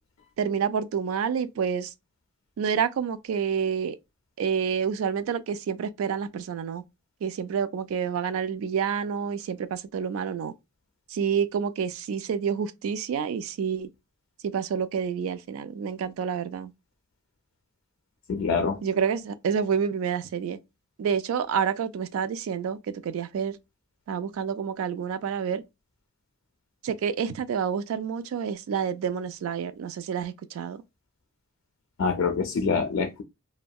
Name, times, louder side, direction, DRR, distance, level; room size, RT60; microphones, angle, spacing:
voice 1, 0.4-1.9 2.6-3.9 4.4-6.8 7.2-10.5 11.1-13.9 14.4-16.7 18.8-20.6 21.0-22.8 23.0-23.5 24.1-25.6 26.8-30.8, right 7 dB, 75° right, 0.3 m, -28 dB
voice 2, 18.3-18.8 32.0-33.2, left 5 dB, 65° left, 0.3 m, -25 dB
2.7 x 2.1 x 2.2 m
head